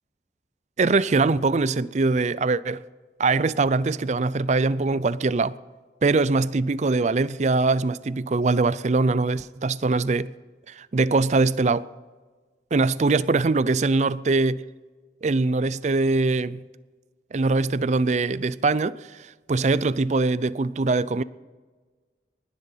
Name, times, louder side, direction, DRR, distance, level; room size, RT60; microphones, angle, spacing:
voice 1, 0.8-2.8 3.2-5.5 6.0-10.3 10.7-11.9 12.7-14.6 15.2-16.6 17.3-19.0 19.5-21.2, right 3 dB, 40° right, 0.4 m, -22 dB
20.0 x 11.0 x 5.6 m
head